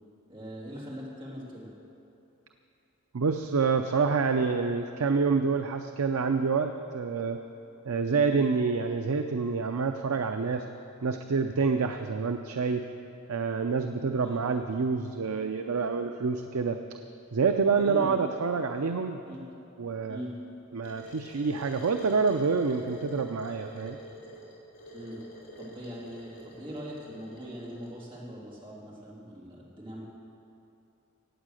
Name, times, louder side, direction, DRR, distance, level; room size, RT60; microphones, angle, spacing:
voice 1, 0.3-1.7 8.0-8.3 14.2-14.4 17.8-18.1 19.3-19.4 20.1-20.6 24.9-25.2 25.6-30.0, equal, 25° right, -5 dB, 3.2 m, -41 dB
voice 2, 3.1-7.4 7.9-10.6 11.0-12.8 13.3-16.8 17.3-19.2 19.8-20.2 20.7-24.0, right 5 dB, 75° right, 6 dB, 0.5 m, -27 dB
sound 1, 20.8-27.9, equal, 60° left, 3.1 m, -47 dB
16.0 x 9.0 x 6.4 m, 2.9 s
head